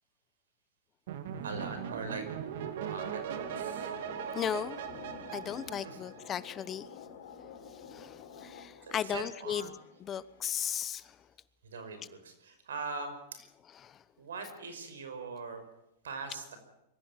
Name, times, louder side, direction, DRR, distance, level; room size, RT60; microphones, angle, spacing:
sound 1, 1.1-6.5, right 8 dB, 65° right, 2.5 m, -39 dB
voice 1, 1.4-2.2 2.9-3.9 5.8-6.0 8.8-9.7 11.6-13.1 14.2-15.6 16.0-16.6, right 4 dB, 90° right, 9 dB, 5.5 m, -41 dB
sound 2, 2.5-10.8, left 5 dB, 55° left, 5.0 m, -50 dB
voice 2, 4.3-4.8 5.3-6.9 7.9-11.2 13.7-14.0, left 9 dB, 25° left, 17 dB, 1.0 m, -36 dB
23.0 x 15.0 x 9.2 m, 0.86 s
hypercardioid pair, 125°, 0 cm